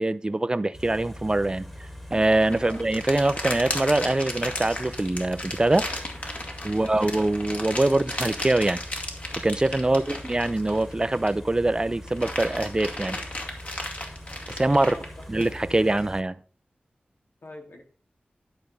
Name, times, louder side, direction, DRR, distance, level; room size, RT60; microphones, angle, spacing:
voice 1, 0.0-1.7 2.1-5.9 6.6-8.8 9.4-13.2 14.5-14.9 15.3-16.4, right 2 dB, 25° right, 0.5 m, -23 dB
Car / Idling, 0.7-16.2, left 1 dB, 5° left, 1.5 m, -42 dB
sound 1, 2.2-11.5 11.9-16.0, left 1 dB, 45° left, 2.0 m, -35 dB
voice 2, 17.4-17.8, left 1 dB, 80° left, 2.0 m, -43 dB
11.0 x 5.2 x 4.0 m
wide cardioid pair, 65°, 3 cm